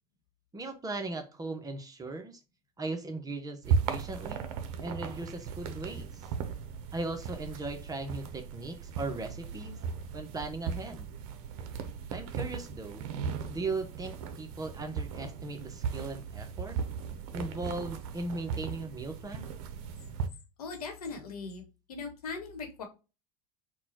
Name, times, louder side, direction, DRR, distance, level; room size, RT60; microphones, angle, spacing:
voice 1, 0.5-2.4 2.8-4.5 4.8-6.2 6.9-9.8 10.1-11.1 12.1-13.1 13.5-16.8 17.3-19.5, right 2 dB, 20° right, 0.9 m, -38 dB
sound 1, 3.6-20.3, right 6 dB, 60° right, 0.6 m, -37 dB
voice 2, 20.6-21.6 21.9-22.8, left 4 dB, 80° left, 1.1 m, -39 dB
4.1 x 2.3 x 4.2 m
hypercardioid pair, 75°, 19 cm